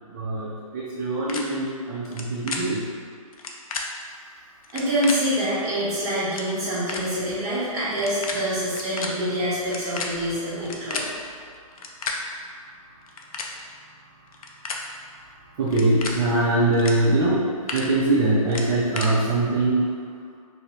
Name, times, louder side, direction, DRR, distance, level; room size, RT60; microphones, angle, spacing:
voice 1, 0.1-2.8 10.5-11.1 15.6-19.9, right 2 dB, 35° right, -6 dB, 0.4 m, -23 dB
sound 1, 1.3-1.4 2.0-2.2 2.5-2.6 3.3-3.8 4.6-5.1 5.9-6.0 6.2-6.5 6.9-7.0 7.9-8.3 8.6-9.1 9.6-11.1 11.7-12.1 13.0-13.5 14.3-14.8 15.7-16.1 16.7-16.9 17.3-17.8 18.5-19.1, left 5 dB, 75° left, 0.4 m, -32 dB
voice 2, 4.7-11.0, equal, 20° right, -11 dB, 0.9 m, -26 dB
2.5 x 2.0 x 3.0 m, 2.2 s
hypercardioid pair, 135°, 19 cm